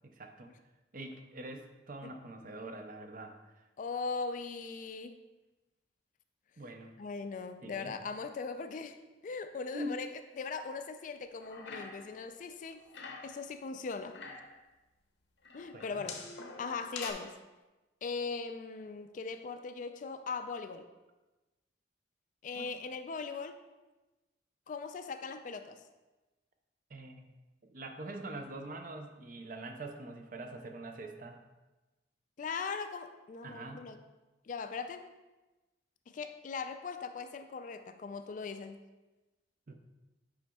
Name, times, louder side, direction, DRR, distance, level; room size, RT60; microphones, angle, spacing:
voice 1, 0.0-0.5 0.9-3.4 6.6-6.9 7.6-7.9 9.7-10.0 15.7-16.1 22.6-22.7 26.9-27.3 27.6-31.4 33.4-33.9 39.7-39.8, right 1 dB, 45° right, 5 dB, 0.6 m, -44 dB
voice 2, 3.8-5.2 7.0-9.0 9.2-10.1 10.4-12.8 13.2-14.2 15.5-16.2 16.6-17.4 18.0-20.9 22.4-23.6 24.7-25.8 32.4-34.0 34.5-35.1 36.1-38.8, left 4 dB, 45° left, 9 dB, 0.3 m, -39 dB
sound 1, 11.3-12.2 12.5-13.4 13.9-14.6 15.4-17.1, left 4 dB, 70° left, 0.7 m, -45 dB
8.7 x 5.1 x 2.3 m, 1.1 s
head